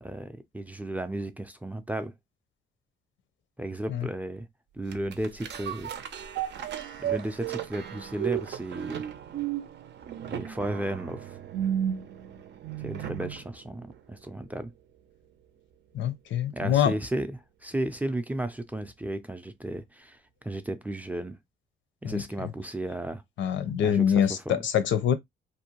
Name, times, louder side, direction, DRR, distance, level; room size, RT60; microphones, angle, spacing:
voice 1, 0.0-2.1 3.6-4.5 4.7-5.9 7.0-9.0 10.3-11.4 12.8-14.7 16.5-20.2 20.4-21.4 22.0-23.2 23.8-24.6, right 1 dB, 10° right, 0.4 m, -34 dB
sound 1, 4.9-13.5 13.9-14.0, right 10 dB, 60° right, 0.6 m, -34 dB
voice 2, 15.9-16.9 22.0-22.2 23.4-25.1, left 9 dB, 70° left, 0.7 m, -25 dB
2.6 x 2.1 x 2.9 m
cardioid pair, 90°, 20 cm